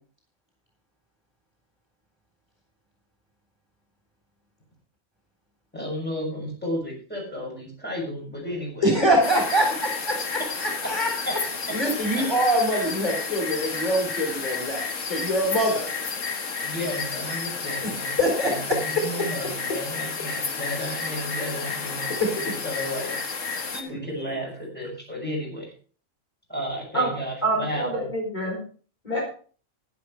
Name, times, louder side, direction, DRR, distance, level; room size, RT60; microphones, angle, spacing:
voice 1, 5.7-9.0 11.3-11.4 11.7-11.8 12.1-12.2 16.6-23.1 23.7-25.7 26.5-28.1, equal, 10° left, -2 dB, 6.2 m, -33 dB
voice 2, 8.8-11.1 11.7-15.9 18.2-18.6 22.2-22.3 23.7-23.9 24.2-24.3, equal, 20° right, 1 dB, 3.7 m, -24 dB
sound 1, 9.2-23.8, left 4 dB, 85° left, 1.8 m, -31 dB
voice 3, 27.4-28.6 29.0-29.2, right 2 dB, 35° left, -2 dB, 3.7 m, -26 dB
11.5 x 11.0 x 4.8 m, 0.41 s
omnidirectional pair, 1.3 m